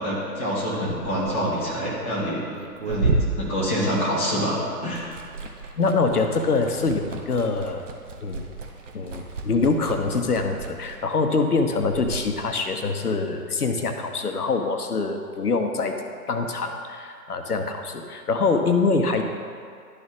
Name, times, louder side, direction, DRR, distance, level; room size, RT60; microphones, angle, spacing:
voice 1, 0.0-2.4 2.9-5.1, equal, 10° left, -7 dB, 0.5 m, -26 dB
Liquid, 0.7-4.4 4.7-12.3, right 3 dB, 50° right, 1.0 m, -32 dB
voice 2, 5.8-7.8 8.2-8.4 8.9-16.0 16.3-19.2, left 4 dB, 70° left, 6 dB, 0.9 m, -24 dB
11.5 x 4.1 x 3.5 m, 2.2 s
figure-of-eight pair, 125°, 47 cm